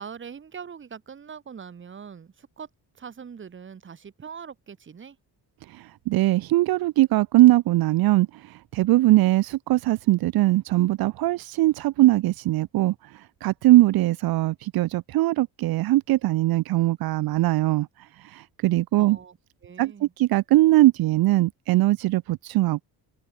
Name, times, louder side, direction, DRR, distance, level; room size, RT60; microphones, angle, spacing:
voice 1, 0.0-2.7 2.9-5.2 19.0-19.4 19.6-20.1, right 7 dB, 30° right, 2.7 m, -42 dB
voice 2, 6.1-8.3 8.7-12.9 13.4-17.9 18.3-19.2 19.8-22.9, right 17 dB, 65° right, 0.5 m, -20 dB
cardioid pair, 175°, 40 cm